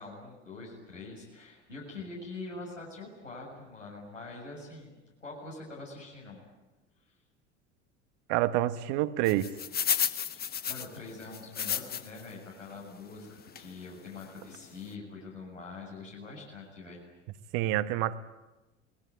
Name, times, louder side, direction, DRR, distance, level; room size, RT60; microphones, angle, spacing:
voice 1, 0.0-4.9 5.2-6.4 10.3-17.0, left 3 dB, 85° left, -4 dB, 7.1 m, -44 dB
voice 2, 8.3-9.5 17.5-18.2, right 14 dB, 55° right, 12 dB, 1.4 m, -27 dB
sound 1, 9.3-12.3 12.7-12.8 13.6-13.7 14.2-14.3 14.5-14.7, left 8 dB, 25° left, 1.1 m, -32 dB
28.5 x 19.5 x 9.5 m, 1.1 s
figure-of-eight pair, 70°, 36 cm